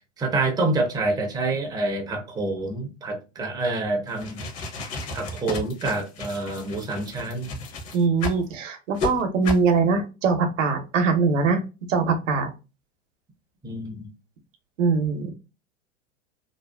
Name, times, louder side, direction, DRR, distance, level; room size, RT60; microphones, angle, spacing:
voice 1, 0.2-4.4 5.1-7.5 13.6-14.1, right 2 dB, 10° right, 0.5 m, -27 dB
sound 1, 4.1-8.4 9.0-9.1 9.4-9.7, left 3 dB, 40° left, 0.8 m, -33 dB
voice 2, 7.9-11.6 11.9-12.5 14.8-15.3, right 4 dB, 75° right, 0.7 m, -22 dB
2.6 x 2.3 x 2.2 m
hypercardioid pair, 95°, 38 cm